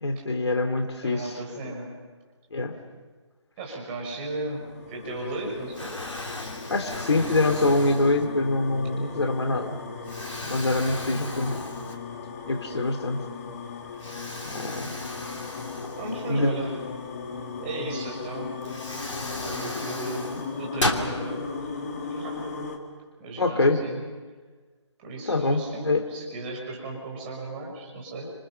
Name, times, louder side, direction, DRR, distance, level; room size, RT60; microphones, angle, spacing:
voice 1, 0.0-1.3 2.5-2.8 6.7-9.8 10.4-11.6 12.5-13.2 14.4-15.0 16.3-16.5 23.4-23.8 25.3-26.0, left 2 dB, 60° left, 6 dB, 3.0 m, -25 dB
voice 2, 1.0-1.9 3.6-6.2 14.7-15.2 15.9-16.7 17.6-18.5 19.4-21.4 22.1-22.4 23.2-24.0 25.0-28.3, right 2 dB, 20° right, -1 dB, 5.7 m, -35 dB
sound 1, 4.1-22.8, left 5 dB, 30° left, 2.6 m, -37 dB
Explosion, 5.0-5.4 5.7-8.6 9.2-9.3 10.1-12.3 12.7-12.8 14.0-16.6 18.1-18.2 18.6-21.1, left 1 dB, 80° left, 3.1 m, -35 dB
30.0 x 27.5 x 5.8 m, 1.4 s
figure-of-eight pair, 150°, 16 cm